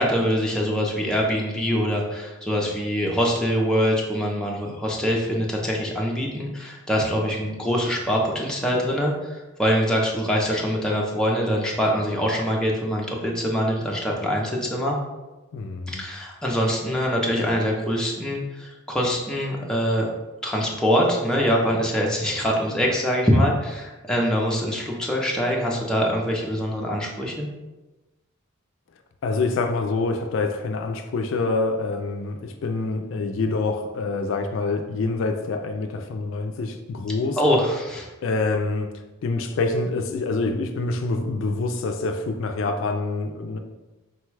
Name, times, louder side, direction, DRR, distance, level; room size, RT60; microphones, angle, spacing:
voice 1, 0.0-15.0 15.9-20.1 20.4-27.5 37.4-38.1, equal, 5° left, -2 dB, 0.5 m, -24 dB
voice 2, 15.5-16.0 29.2-37.4 38.2-43.6, left 3 dB, 65° left, 5 dB, 0.3 m, -26 dB
4.0 x 2.2 x 4.6 m, 1.1 s
head